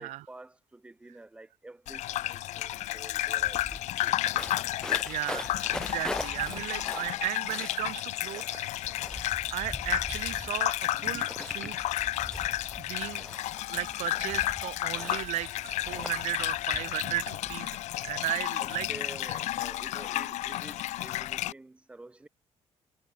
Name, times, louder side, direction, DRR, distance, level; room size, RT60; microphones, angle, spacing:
voice 1, 0.0-4.2 18.6-22.3, right 2 dB, 10° right, 5.0 m, -49 dB
Gurgling / Bathtub (filling or washing), 1.9-21.5, left 15 dB, 80° left, 0.9 m, -32 dB
sound 1, 2.8-2.9 3.1-17.6, left 1 dB, 5° left, 2.5 m, -42 dB
voice 2, 5.0-8.7 9.5-11.8 12.8-13.2 13.7-18.9 19.3-19.4, right 16 dB, 85° right, 0.7 m, -35 dB
cardioid pair, 170°, 12 cm